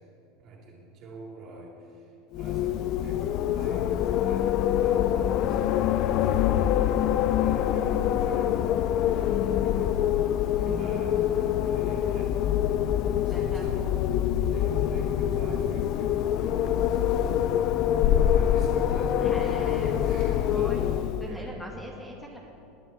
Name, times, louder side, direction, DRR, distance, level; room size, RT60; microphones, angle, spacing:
voice 1, 0.4-7.0 7.4-10.0 10.6-12.4 13.2-14.0 14.5-17.0 17.8-20.9 21.3-21.6, right 2 dB, 45° right, -1 dB, 3.1 m, -44 dB
Wind, 2.3-21.4, left 10 dB, 50° left, 0.5 m, -25 dB
voice 2, 10.5-11.5 13.3-13.7 19.2-20.0 20.5-20.9 21.2-22.4, equal, 5° left, -1 dB, 1.9 m, -40 dB
20.0 x 10.0 x 4.5 m, 2.7 s
supercardioid pair, 115°, 0 cm